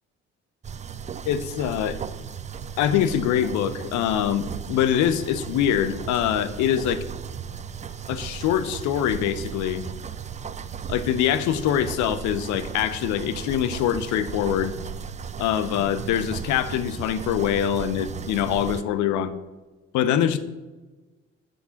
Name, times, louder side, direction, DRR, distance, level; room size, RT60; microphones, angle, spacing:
sound 1, 0.6-18.8, right 7 dB, 20° right, 0.5 m, -36 dB
voice 1, 1.2-2.0 2.8-7.1 8.1-9.8 10.9-14.7 15.4-19.3 19.9-20.4, left 10 dB, 55° left, 13 dB, 0.8 m, -24 dB
9.1 x 6.9 x 5.7 m, 1.2 s
figure-of-eight pair, 45°, 35 cm